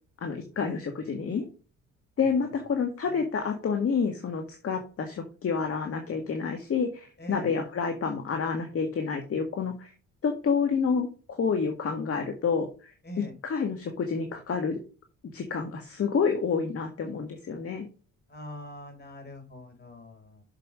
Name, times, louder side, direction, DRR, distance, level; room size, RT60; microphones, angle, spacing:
voice 1, 0.2-1.5 2.2-9.9 10.2-12.9 13.4-14.8 15.3-17.9, left 5 dB, 50° left, 5 dB, 1.8 m, -29 dB
voice 2, 7.2-7.5 13.0-13.3 18.3-20.4, left 1 dB, 35° left, 4 dB, 4.2 m, -43 dB
6.7 x 5.2 x 6.4 m, 0.36 s
cardioid pair, 90°, 30 cm